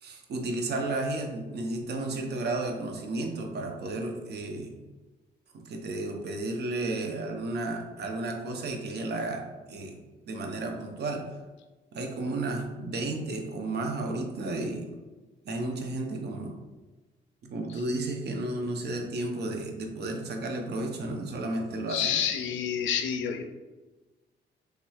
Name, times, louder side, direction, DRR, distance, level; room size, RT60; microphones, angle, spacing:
voice 1, 0.0-4.8 5.5-10.0 10.3-11.3 11.9-14.9 15.5-16.6 17.4-22.2, right 2 dB, 55° right, 3 dB, 0.6 m, -33 dB
voice 2, 21.9-23.4, left 8 dB, 75° left, 6 dB, 0.4 m, -29 dB
3.3 x 3.0 x 2.3 m, 1.2 s
cardioid pair, 90°, 20 cm